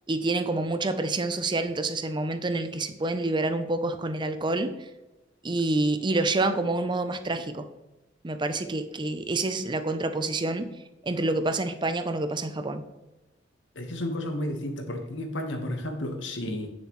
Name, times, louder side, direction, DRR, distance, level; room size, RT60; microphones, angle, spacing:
voice 1, 0.1-4.7 5.4-7.7 8.2-10.7 11.0-12.8, right 2 dB, 25° right, 10 dB, 0.6 m, -27 dB
voice 2, 13.7-16.7, left 1 dB, 80° left, 4 dB, 1.4 m, -32 dB
9.1 x 6.9 x 3.1 m, 1.1 s
head